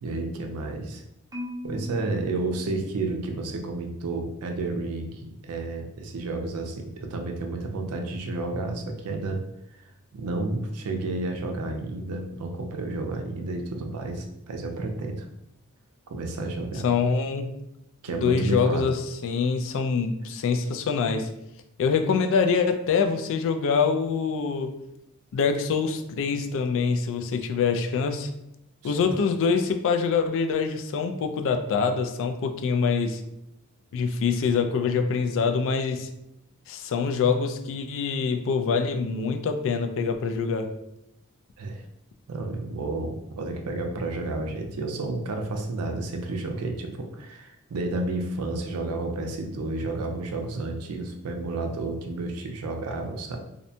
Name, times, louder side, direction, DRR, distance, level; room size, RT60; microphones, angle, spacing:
voice 1, 0.0-1.0 1.6-9.4 9.7-9.8 10.1-15.3 16.1-16.9 18.0-18.8 28.8-29.1 41.6-41.8 42.3-53.4, right 2 dB, 80° right, 4 dB, 0.4 m, -31 dB
Marimba xylophone, 1.3-3.5, left 1 dB, 15° right, 0.4 m, -40 dB
voice 2, 16.8-17.5 18.1-21.3 21.8-24.7 25.3-28.3 28.8-33.2 33.9-36.1 36.7-40.7, left 5 dB, 60° left, 7 dB, 0.3 m, -25 dB
2.6 x 2.1 x 2.6 m, 0.85 s
head